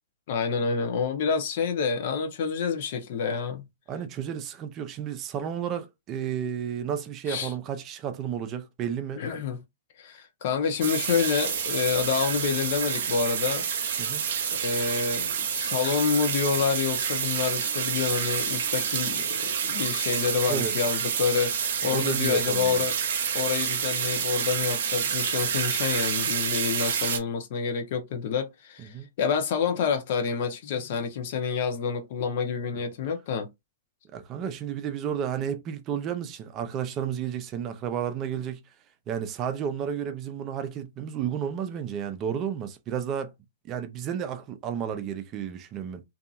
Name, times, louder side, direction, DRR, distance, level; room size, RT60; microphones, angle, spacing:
voice 1, 0.3-3.7 7.3-7.5 9.2-9.6 10.0-13.7 14.5-21.5 21.8-22.9 23.3-33.5, left 6 dB, 55° left, 0.8 m, -28 dB
voice 2, 3.9-9.2 14.0-14.2 20.5-20.8 21.8-22.9 28.8-29.1 34.1-38.6 39.1-43.3 43.7-46.0, right 8 dB, 30° right, 0.5 m, -32 dB
sound 1, 10.8-27.2, right 7 dB, 65° right, 0.7 m, -28 dB
2.7 x 2.6 x 2.4 m
hypercardioid pair, 125°, 0 cm